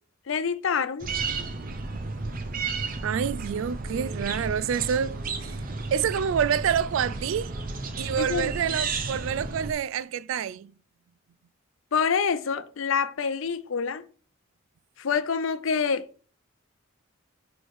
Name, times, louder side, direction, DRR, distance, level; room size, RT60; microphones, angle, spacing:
voice 1, 0.3-1.1 8.2-8.8 11.9-14.0 15.0-16.0, left 6 dB, 70° left, 0.5 m, -27 dB
sound 1, 1.0-9.7, right 3 dB, 40° right, 0.7 m, -33 dB
voice 2, 3.0-5.6 5.9-7.5 8.0-10.7, right 8 dB, 70° right, 0.3 m, -27 dB
4.5 x 4.4 x 4.8 m
head